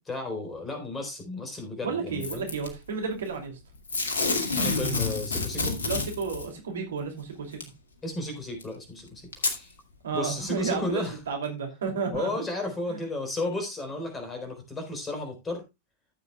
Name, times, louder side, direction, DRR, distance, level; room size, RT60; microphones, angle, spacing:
voice 1, 0.0-2.5 4.6-5.8 8.0-9.7 10.1-11.2 12.1-15.6, left 2 dB, 15° left, 4.1 m, -33 dB
voice 2, 1.8-3.5 5.8-7.6 10.0-12.3 12.9-13.0, right 5 dB, 65° right, 2.7 m, -32 dB
Packing tape duct tape / Tearing, 2.2-2.7 3.9-6.5 7.6-7.7 8.6-8.7 9.3-9.6 10.2-10.3, left 3 dB, 70° left, 2.2 m, -28 dB
14.5 x 8.0 x 2.3 m
figure-of-eight pair, 90°, 0 cm